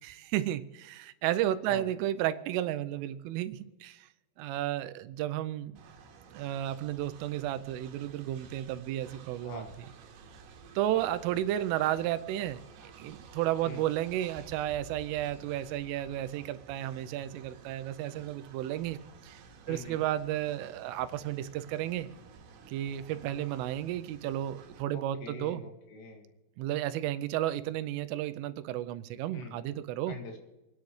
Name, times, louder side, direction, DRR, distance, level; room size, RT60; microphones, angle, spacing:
voice 1, 0.0-4.1 4.4-5.7 6.3-9.7 10.8-12.6 13.0-19.4 19.7-22.1 22.7-25.6 26.6-30.2, right 13 dB, 85° right, 11 dB, 3.1 m, -33 dB
Train, 5.8-24.8, right 5 dB, 65° right, 3.2 m, -53 dB
voice 2, 9.4-9.7 13.6-13.8 19.7-20.0 24.9-26.3 29.3-29.6 30.1-30.4, left 4 dB, 80° left, 2 dB, 4.7 m, -44 dB
27.0 x 10.5 x 3.2 m, 1.0 s
omnidirectional pair, 5.8 m